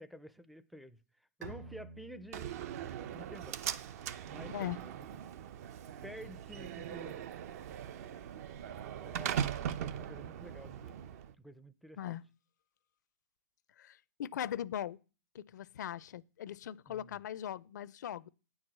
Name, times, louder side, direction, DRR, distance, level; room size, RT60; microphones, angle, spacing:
voice 1, 0.0-2.5 3.1-5.3 6.0-7.3 9.0-10.9 11.4-12.2 16.9-17.2, equal, ahead, 0.4 m, -51 dB
Bowed string instrument, 1.4-4.9, right 3 dB, 70° right, 2.1 m, -53 dB
Slam, 2.3-11.3, right 9 dB, 55° right, 0.6 m, -40 dB
voice 2, 4.5-4.8 12.0-12.2 13.8-15.0 15.3-18.3, left 10 dB, 75° left, 0.5 m, -40 dB
9.2 x 4.7 x 7.5 m
hypercardioid pair, 140°, 10 cm